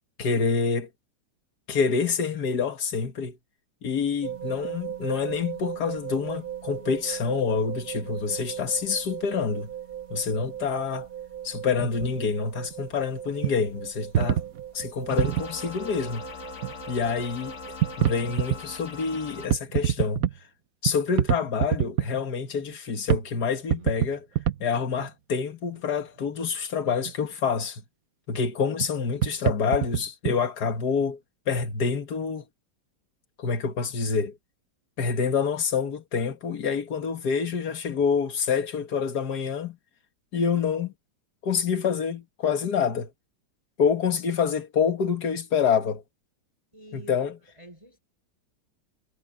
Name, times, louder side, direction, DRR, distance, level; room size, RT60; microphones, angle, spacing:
voice 1, 0.2-0.9 1.7-3.4 3.8-9.7 10.1-11.1 11.4-14.4 14.7-16.3 16.9-17.6 18.0-20.3 20.8-24.3 24.6-27.8 28.3-31.2 31.5-32.4 33.4-34.4 35.0-39.8 40.3-40.9 41.4-43.1 43.8-46.0 46.9-47.3, left 6 dB, 60° left, 2.1 m, -27 dB
sound 1, 4.2-18.6, right 10 dB, 35° right, 1.6 m, -38 dB
sound 2, 11.8-12.2 12.6-12.7 13.4-13.6 14.1-15.5 16.6-16.7 17.2-17.3 17.8-18.6 19.4-20.4 20.9-22.1 22.7-22.8 23.1-23.3 23.5-24.6 25.0-25.1 26.9-27.1 28.8-28.9 29.1-30.3, right 11 dB, 60° right, 1.2 m, -25 dB
sound 3, 15.1-19.5, left 5 dB, 40° left, 1.9 m, -41 dB
voice 2, 46.7-47.1 47.4-48.0, right 1 dB, 15° right, 5.6 m, -48 dB
omnidirectional pair, 2.0 m